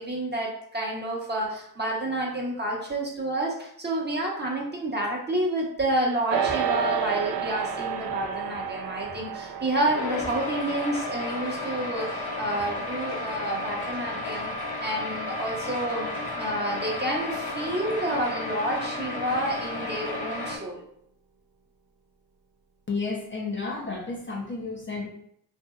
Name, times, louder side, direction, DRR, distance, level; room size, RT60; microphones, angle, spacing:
voice 1, 0.0-14.5 14.8-16.1 16.4-20.8, right 1 dB, 25° right, -2 dB, 1.0 m, -29 dB
sound 1, 6.3-15.8, right 8 dB, 65° right, 0.5 m, -33 dB
sound 2, 9.8-20.6, left 2 dB, 65° left, 0.8 m, -33 dB
voice 2, 22.9-25.1, left 4 dB, 30° left, -2 dB, 0.7 m, -32 dB
2.7 x 2.6 x 2.4 m, 0.69 s
supercardioid pair, 50°, 40 cm